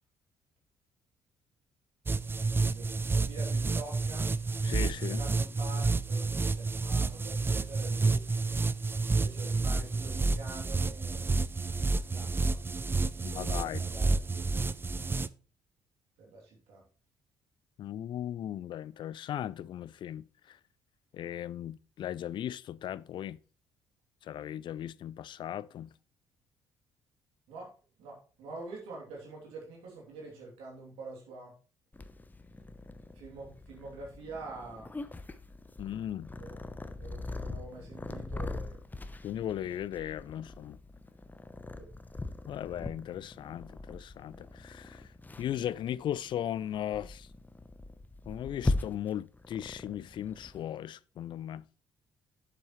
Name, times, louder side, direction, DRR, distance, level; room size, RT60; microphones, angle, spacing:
sound 1, 2.1-15.3, right 3 dB, 25° right, 0.5 m, -30 dB
voice 1, 2.7-4.3 4.9-8.2 9.1-11.4 11.9-12.6 13.1-14.6 16.2-16.8 27.5-27.7 28.0-31.5 33.1-34.9 36.4-36.6 37.0-38.8 41.8-41.9, right 3 dB, 75° right, 2.9 m, -46 dB
voice 2, 4.6-5.2 13.2-13.8 17.8-20.6 21.1-23.4 24.2-25.9 35.8-36.3 39.2-40.8 42.5-47.3 48.3-51.6, left 11 dB, 55° left, 0.4 m, -37 dB
Purr, 31.9-50.6, left 2 dB, 20° left, 0.9 m, -40 dB
8.5 x 7.2 x 3.2 m
hypercardioid pair, 55°, 10 cm